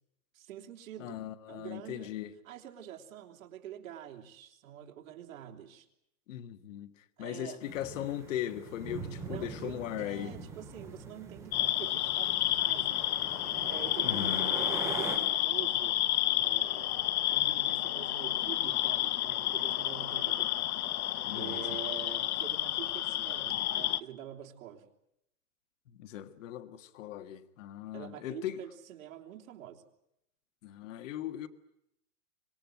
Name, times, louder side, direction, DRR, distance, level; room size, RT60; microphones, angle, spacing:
voice 1, 0.3-1.2 1.5-2.2 2.4-5.8 7.2-7.6 9.3-13.0 13.7-20.5 21.3-24.9 27.9-29.8, right 10 dB, 65° right, 3.4 m, -46 dB
voice 2, 1.0-2.3 6.3-6.9 7.2-10.3 14.0-14.5 21.2-21.6 25.9-28.6 30.6-31.5, left 11 dB, 55° left, 1.6 m, -38 dB
sound 1, 7.6-15.2, right 4 dB, 5° right, 3.3 m, -43 dB
sound 2, 11.5-24.0, left 13 dB, 70° left, 1.0 m, -30 dB
25.5 x 20.0 x 9.2 m
supercardioid pair, 170°, 45 cm